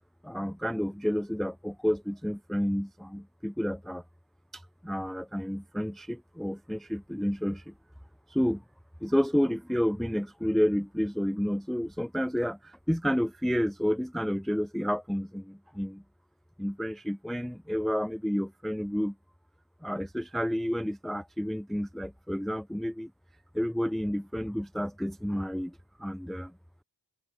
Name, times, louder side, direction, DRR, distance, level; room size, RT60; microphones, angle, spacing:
voice 1, 0.2-4.0 4.5-7.7 8.3-8.6 9.0-16.0 16.6-19.1 19.8-23.1 23.5-26.5, equal, ahead, 0.8 m, -30 dB
wide cardioid pair, 75°, 42 cm